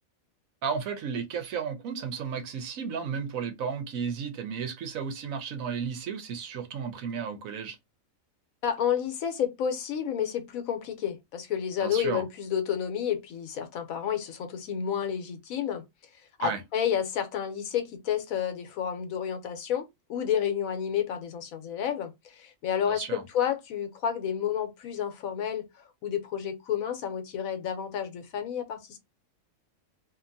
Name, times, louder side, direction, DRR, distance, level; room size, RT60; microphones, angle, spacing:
voice 1, 0.6-7.8 11.8-12.2 16.4-16.6 22.9-23.2, right 6 dB, 75° right, 1.1 m, -33 dB
voice 2, 8.6-15.8 16.4-25.7 26.0-29.0, left 9 dB, 85° left, 1.1 m, -30 dB
2.8 x 2.5 x 2.6 m
omnidirectional pair, 1.4 m